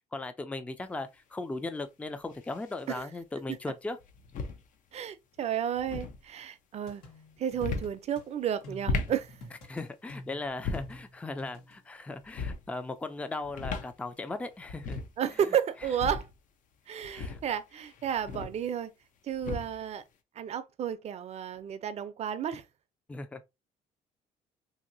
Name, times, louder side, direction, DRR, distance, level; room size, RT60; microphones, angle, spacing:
voice 1, 0.1-4.0 9.7-15.0 17.1-17.4 23.1-23.4, left 2 dB, 10° left, 0.4 m, -37 dB
sound 1, 0.8-0.9 2.3-2.8 4.0-4.6 5.7-6.2 7.5-8.0 8.7-9.2 10.5-11.0 12.2-12.7 13.4-13.9 14.3-14.4 14.6-15.2 15.8-16.3 17.0-18.7 19.3-19.8, left 4 dB, 60° left, 0.6 m, -36 dB
voice 2, 4.9-7.0 7.4-9.3 15.2-16.3 16.9-18.9 19.2-20.0 20.4-22.6, right 9 dB, 45° right, 0.5 m, -32 dB
sound 2, 6.9-8.3 8.6-11.8, left 1 dB, 85° left, 1.3 m, -48 dB
2.8 x 2.7 x 2.6 m
cardioid pair, 95°, 15 cm